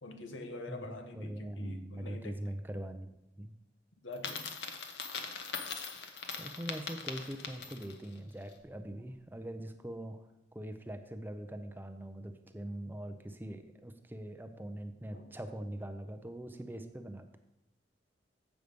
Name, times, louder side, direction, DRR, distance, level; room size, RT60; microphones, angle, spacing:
voice 1, 0.0-2.4 4.0-4.5 15.1-15.3, left 2 dB, 85° left, 6 dB, 1.1 m, -45 dB
voice 2, 1.1-3.1 3.4-3.5 6.4-10.3 10.5-17.4, right 1 dB, 10° right, 8 dB, 0.5 m, -42 dB
Coin (dropping), 4.1-8.0, left 5 dB, 60° left, 1.0 m, -41 dB
8.1 x 6.5 x 5.2 m, 0.91 s
head